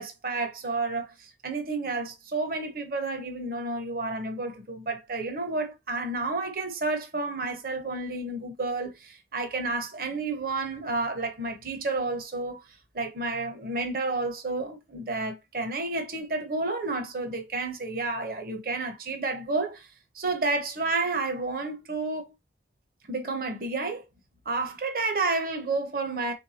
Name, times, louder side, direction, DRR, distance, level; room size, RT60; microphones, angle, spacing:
voice 1, 0.0-12.6 12.9-19.9 20.1-22.3 23.1-24.0 24.5-26.3, right 3 dB, 50° right, 0.9 m, -30 dB
4.5 x 3.5 x 2.8 m
head